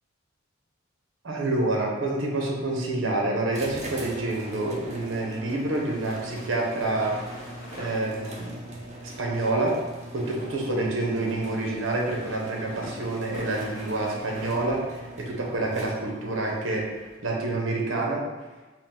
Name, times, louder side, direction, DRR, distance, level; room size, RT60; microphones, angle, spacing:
voice 1, 1.2-7.5 7.7-8.6 9.2-9.8 10.1-16.9 17.2-18.2, right 2 dB, 70° right, -1 dB, 0.7 m, -28 dB
sound 1, 3.5-16.3, right 1 dB, 35° right, 0.5 m, -41 dB
sound 2, 4.4-17.2, left 1 dB, 45° left, 0.8 m, -47 dB
3.7 x 2.5 x 3.5 m, 1.2 s
head